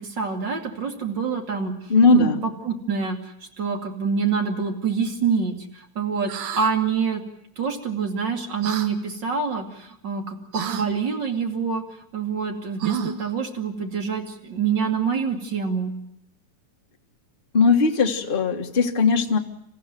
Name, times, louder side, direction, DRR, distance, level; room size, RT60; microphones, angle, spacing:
voice 1, 0.0-1.7 2.1-7.2 7.6-11.8 12.1-15.9, right 6 dB, 35° right, 3 dB, 3.0 m, -26 dB
voice 2, 1.9-2.4 17.5-19.4, left 4 dB, 25° left, 3 dB, 1.2 m, -18 dB
sound 1, 6.3-6.7 8.6-8.9 10.5-10.9 12.8-13.3, right 8 dB, 80° right, 2.9 m, -30 dB
28.0 x 15.0 x 9.3 m, 0.76 s
omnidirectional pair, 3.5 m